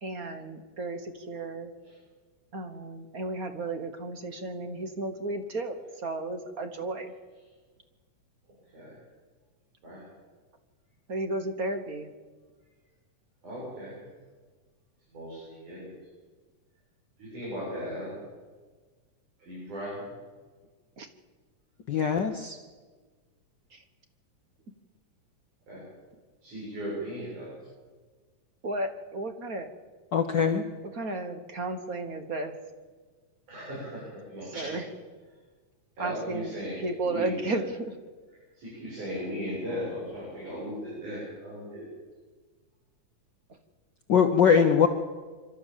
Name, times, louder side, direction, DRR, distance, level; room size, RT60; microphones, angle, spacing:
voice 1, 0.0-1.7 2.5-7.1 11.1-12.1 21.0-21.1 23.7-23.8 28.6-29.7 30.9-32.6 34.5-34.8 36.0-36.5 36.8-37.8 43.5-43.6, right 2 dB, 50° right, 8 dB, 1.0 m, -33 dB
voice 2, 13.4-14.0 15.1-15.9 17.2-18.1 19.4-20.1 25.7-25.8 26.4-27.5 33.5-34.8 36.0-37.6 38.5-41.9, equal, 80° right, -7 dB, 9.2 m, -37 dB
voice 3, 21.9-22.6 30.1-30.6 44.1-44.9, left 7 dB, 80° left, 5 dB, 1.0 m, -22 dB
26.5 x 13.5 x 7.4 m, 1.4 s
omnidirectional pair, 3.4 m